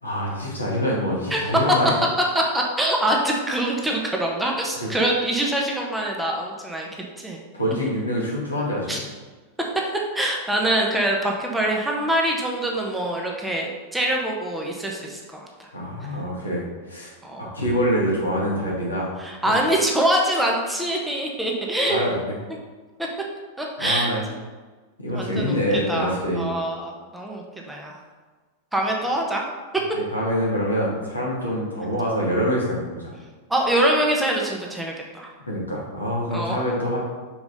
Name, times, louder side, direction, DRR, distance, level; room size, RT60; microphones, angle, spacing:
voice 1, 0.0-2.0 4.8-4.9 7.5-9.0 15.7-17.1 17.5-19.1 19.5-19.6 21.9-22.4 23.8-24.2 25.0-26.6 29.9-33.1 35.4-37.0, equal, 80° left, -6 dB, 2.2 m, -25 dB
voice 2, 2.3-6.9 7.2-7.4 8.9-9.0 10.1-15.7 17.2-17.4 19.2-22.0 23.6-24.1 25.1-25.6 25.9-27.9 28.7-29.4 33.5-35.3 36.3-36.6, right 1 dB, 5° right, -1 dB, 1.2 m, -24 dB
5.7 x 4.7 x 5.3 m, 1.3 s
figure-of-eight pair, 90°, 0 cm